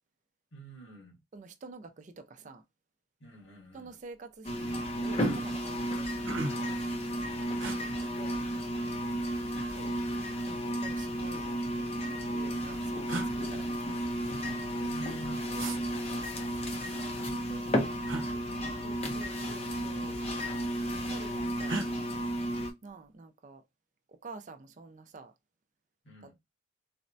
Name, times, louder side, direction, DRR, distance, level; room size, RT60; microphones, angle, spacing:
voice 1, 0.5-1.2 3.2-4.0 9.0-9.5 14.2-16.4 16.9-19.3 26.0-26.4, right 1 dB, 65° left, 1.4 m, -51 dB
voice 2, 1.3-2.6 3.7-6.8 7.8-7.9 8.2-8.4 9.7-10.0 10.4-13.7 16.7-17.0 18.8-20.2 20.8-21.8 22.8-23.6 24.1-25.3, right 3 dB, 35° right, 0.3 m, -49 dB
sound 1, 3.9-4.1 4.5-4.9 5.5-5.6 5.9-6.8 7.6-7.8 9.0-9.7 10.8-11.7 12.6-12.7 13.1-13.3 15.6-15.8 18.0-18.3 19.6-19.9 20.2-20.8 21.7-21.9, right 2 dB, 70° right, 0.7 m, -38 dB
sound 2, 4.4-22.7, equal, 30° left, 0.6 m, -33 dB
4.1 x 2.1 x 2.5 m
head